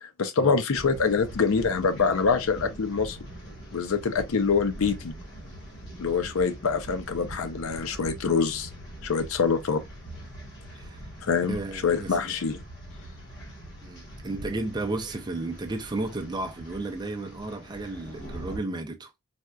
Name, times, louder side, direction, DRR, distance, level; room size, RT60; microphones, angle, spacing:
voice 1, 0.0-3.2 3.7-5.1 6.0-8.7 9.0-9.8 11.2-11.6 11.8-12.6, left 5 dB, 70° left, 0.5 m, -25 dB
sound 1, 0.7-18.6, right 1 dB, 50° left, 1.2 m, -43 dB
voice 2, 11.5-12.3 13.8-19.1, right 2 dB, 20° right, 0.4 m, -33 dB
4.2 x 2.3 x 2.3 m
head